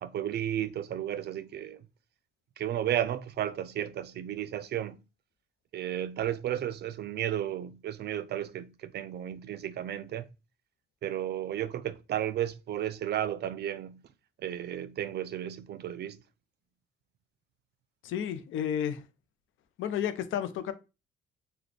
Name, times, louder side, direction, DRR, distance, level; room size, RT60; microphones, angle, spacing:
voice 1, 0.0-1.8 2.6-5.0 5.7-10.3 11.0-14.0 14.4-16.2, right 11 dB, 55° right, 0.4 m, -33 dB
voice 2, 18.0-19.0 19.8-20.7, left 9 dB, 80° left, 0.5 m, -31 dB
3.2 x 2.2 x 3.9 m
cardioid pair, 90°, 20 cm